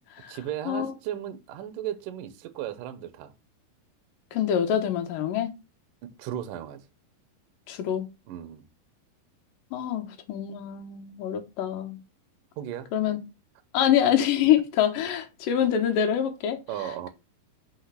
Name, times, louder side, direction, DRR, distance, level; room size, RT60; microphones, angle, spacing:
voice 1, 0.3-3.3 6.2-6.9 8.3-8.6 12.6-12.9 14.4-14.5 16.7-17.1, right 11 dB, 70° right, 2.2 m, -35 dB
voice 2, 4.3-5.5 7.7-8.1 9.7-12.0 12.9-13.2 13.7-16.6, left 10 dB, 65° left, 2.7 m, -25 dB
6.0 x 5.6 x 5.7 m
omnidirectional pair, 4.7 m